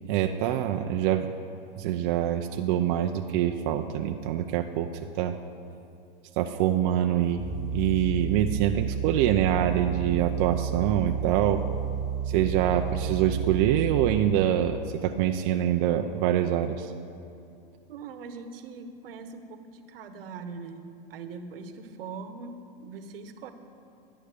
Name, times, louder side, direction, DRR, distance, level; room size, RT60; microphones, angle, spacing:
voice 1, 0.1-1.3 1.8-4.9 5.1-5.4 6.4-7.5 7.7-11.6 12.3-16.9, right 11 dB, 45° right, 5 dB, 0.6 m, -25 dB
sound 1, 7.4-14.2, right 8 dB, 20° left, 2.3 m, -31 dB
voice 2, 17.9-23.5, right 4 dB, 75° right, 8 dB, 1.2 m, -41 dB
12.5 x 9.7 x 6.6 m, 2.5 s
hypercardioid pair, 130°, 29 cm